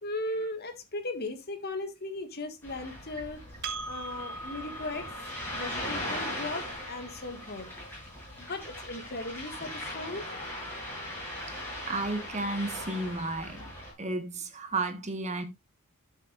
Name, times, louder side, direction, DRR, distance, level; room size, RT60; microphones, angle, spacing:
voice 1, 0.0-3.4 3.9-5.1 5.5-7.7 8.4-10.3, left 2 dB, 45° left, 1.8 m, -37 dB
Ocean, 2.6-13.9, left 1 dB, 10° left, 7.1 m, -39 dB
Percussion, 3.6-8.4, right 3 dB, 50° right, 1.6 m, -43 dB
voice 2, 11.9-13.7 14.0-15.4, right 2 dB, 30° right, 1.4 m, -32 dB
12.0 x 7.4 x 2.5 m
head